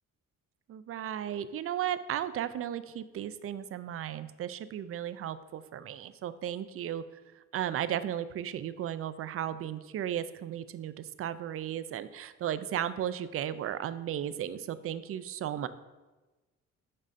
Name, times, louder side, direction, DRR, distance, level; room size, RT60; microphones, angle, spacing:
voice 1, 0.7-7.0 7.5-15.7, right 10 dB, 50° right, 14 dB, 0.4 m, -35 dB
7.4 x 5.3 x 2.5 m, 1.2 s
cardioid pair, 90°, 30 cm